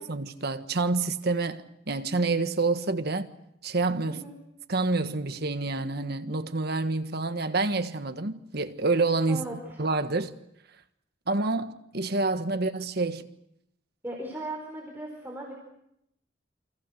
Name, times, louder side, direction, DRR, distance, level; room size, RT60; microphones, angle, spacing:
voice 1, 0.0-3.3 3.6-4.2 4.7-9.5 9.8-10.3 11.3-13.3, right 3 dB, 55° right, 1.4 m, -28 dB
voice 2, 9.3-9.8 14.0-15.5, right 1 dB, 10° right, 4.6 m, -37 dB
29.0 x 25.0 x 6.6 m
head